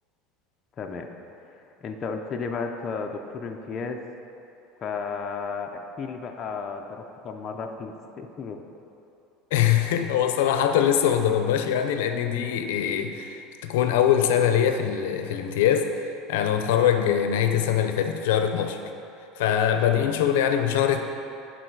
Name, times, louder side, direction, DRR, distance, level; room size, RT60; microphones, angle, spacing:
voice 1, 0.8-1.1 1.4-4.0 4.8-8.6, left 5 dB, 25° left, 3 dB, 0.4 m, -33 dB
voice 2, 9.5-15.9 16.3-18.8 19.4-21.0, left 9 dB, 90° left, 6 dB, 0.5 m, -23 dB
10.5 x 4.0 x 4.6 m, 2.8 s
cardioid pair, 165°, 0 cm